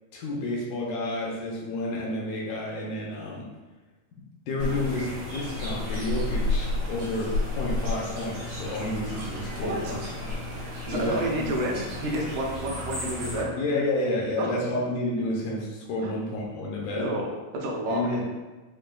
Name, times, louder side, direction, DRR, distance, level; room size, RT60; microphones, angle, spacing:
voice 1, 0.1-3.4 4.5-10.3 10.9-11.5 13.6-17.1 17.9-18.3, left 2 dB, 80° left, -3 dB, 2.1 m, -30 dB
sound 1, 4.6-13.4, left 2 dB, 70° right, 2.4 m, -32 dB
voice 2, 9.6-10.0 10.9-13.5 14.4-14.7 16.0-16.1 17.0-18.1, right 1 dB, 90° right, -1 dB, 2.2 m, -30 dB
6.2 x 2.2 x 2.2 m, 1.2 s
omnidirectional pair, 3.4 m